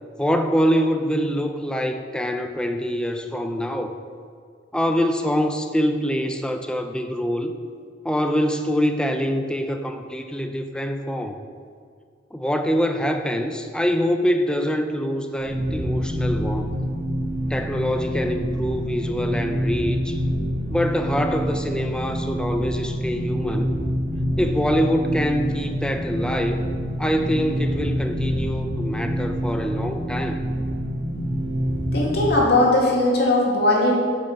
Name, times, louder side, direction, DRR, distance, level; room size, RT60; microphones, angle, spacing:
voice 1, 0.2-3.9 4.7-7.5 8.0-11.4 12.3-16.7 17.5-20.2 20.7-23.7 24.4-26.6 27.0-30.4, equal, 5° left, 6 dB, 0.5 m, -24 dB
sound 1, 15.4-32.4, equal, 90° right, 2.3 m, -26 dB
voice 2, 31.9-33.9, left 2 dB, 60° left, -3 dB, 2.2 m, -19 dB
8.8 x 5.4 x 6.4 m, 2.2 s
head